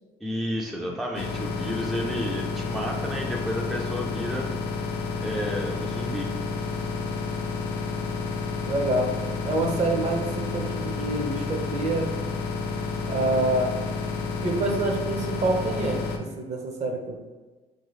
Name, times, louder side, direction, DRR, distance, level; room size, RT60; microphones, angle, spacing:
voice 1, 0.2-4.5 5.2-6.3, equal, ahead, -1 dB, 0.3 m, -31 dB
sound 1, 1.1-16.2, left 4 dB, 85° left, 0.5 m, -30 dB
voice 2, 8.7-9.1 9.5-12.2 13.1-13.8 14.4-17.2, right 2 dB, 40° right, 2 dB, 0.6 m, -27 dB
2.9 x 2.7 x 3.0 m, 1.3 s
cardioid pair, 110°, 17 cm